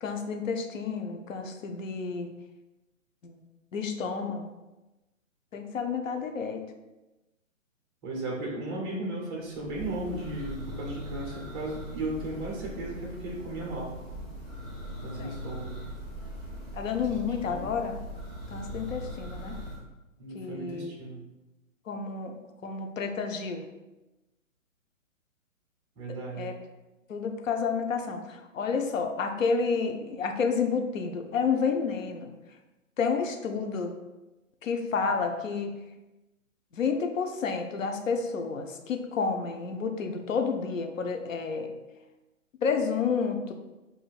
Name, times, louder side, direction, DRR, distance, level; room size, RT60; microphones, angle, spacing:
voice 1, 0.0-2.3 3.2-3.4 3.7-4.5 5.5-6.6 15.2-15.4 16.8-18.0 18.5-19.6 20.3-20.9 21.9-22.3 22.6-23.7 26.1-26.5 27.1-32.3 33.0-34.0 34.6-35.7 36.7-41.7 42.6-43.5, left 5 dB, 70° left, 5 dB, 0.7 m, -30 dB
voice 2, 8.0-13.9 15.0-15.8 17.4-17.7 20.2-21.2 26.0-26.5, right 2 dB, 20° right, -2 dB, 0.8 m, -35 dB
Church bell, 9.5-19.8, equal, 15° left, 1.0 m, -40 dB
6.8 x 2.6 x 2.3 m, 1.0 s
hypercardioid pair, 150°, 40 cm